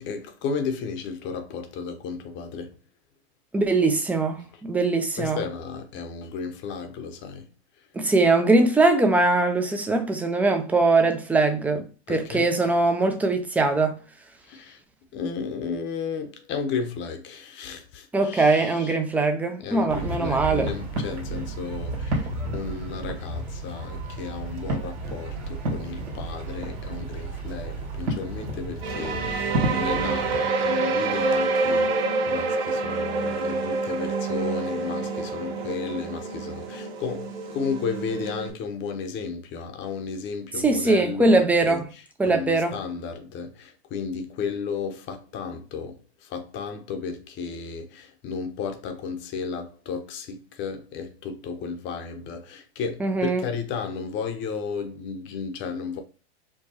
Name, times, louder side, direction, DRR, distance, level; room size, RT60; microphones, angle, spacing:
voice 1, 0.0-2.7 5.2-7.5 12.1-12.4 14.5-14.8 15.1-18.9 19.6-41.8 42.3-56.0, left 5 dB, 35° left, 0.7 m, -33 dB
voice 2, 3.5-5.4 7.9-14.0 18.1-20.7 40.6-41.9 42.2-42.8 53.0-53.4, right 3 dB, 5° right, 0.3 m, -21 dB
sound 1, 19.9-30.4, right 2 dB, 85° right, 1.6 m, -31 dB
sound 2, 28.8-38.5, right 3 dB, 35° right, 1.4 m, -27 dB
4.6 x 2.2 x 2.8 m
hypercardioid pair, 120°, 34 cm